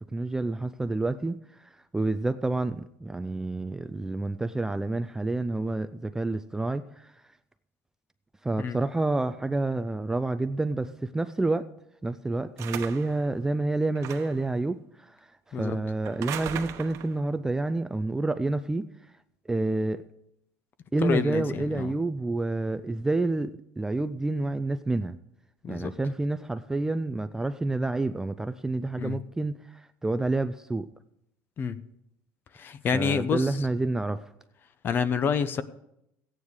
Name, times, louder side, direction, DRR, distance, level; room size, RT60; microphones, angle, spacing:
voice 1, 0.1-7.1 8.4-11.7 12.0-15.2 15.6-18.8 19.5-20.0 20.9-25.2 25.7-30.9 32.9-34.3, right 2 dB, 10° right, 11 dB, 0.3 m, -29 dB
sound 1, 12.6-13.2 14.0-14.5 16.0-17.2, right 10 dB, 50° right, 1.1 m, -37 dB
voice 2, 21.0-21.9 25.6-25.9 29.0-29.2 31.6-31.8 32.5-33.6 34.8-35.6, left 6 dB, 35° left, 14 dB, 0.7 m, -28 dB
15.0 x 9.4 x 4.8 m, 0.80 s
cardioid pair, 140°, 6 cm